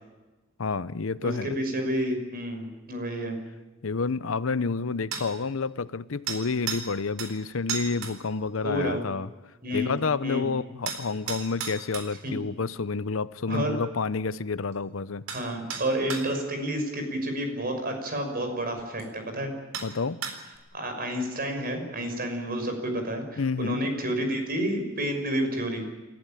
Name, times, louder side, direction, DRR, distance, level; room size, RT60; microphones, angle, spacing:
voice 1, 0.6-1.5 3.8-9.3 9.7-15.2 19.8-20.2 23.4-23.9, left 4 dB, 70° left, 0.7 m, -29 dB
voice 2, 1.2-3.3 8.6-9.0 9.6-10.5 12.2-12.4 13.5-13.7 15.3-19.5 20.7-25.8, equal, 50° right, 6.2 m, -30 dB
sound 1, 5.1-5.3 6.3-6.9 7.2-7.3 7.7-8.2 10.9-12.1 14.7-14.8 15.3-15.4 15.7-16.3 17.9-18.0 19.0-19.1 19.7-19.9 20.2-20.6, right 6 dB, 85° right, 4.1 m, -33 dB
29.0 x 15.0 x 9.1 m
head